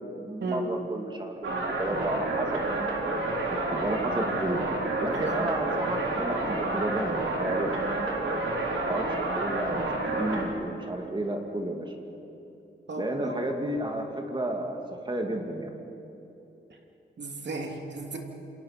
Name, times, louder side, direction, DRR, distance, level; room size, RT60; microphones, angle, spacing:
voice 1, 0.2-2.7 3.5-4.6 5.0-7.7 8.7-11.9 13.0-14.8 15.1-15.7, right 1 dB, 25° right, 2 dB, 2.2 m, -32 dB
sound 1, 1.4-10.4, right 2 dB, 75° right, 3.6 m, -29 dB
voice 2, 12.9-13.3 17.2-18.2, right 2 dB, 60° right, 1 dB, 2.9 m, -34 dB
28.5 x 27.0 x 5.9 m, 3.0 s
wide cardioid pair, 175°, 21 cm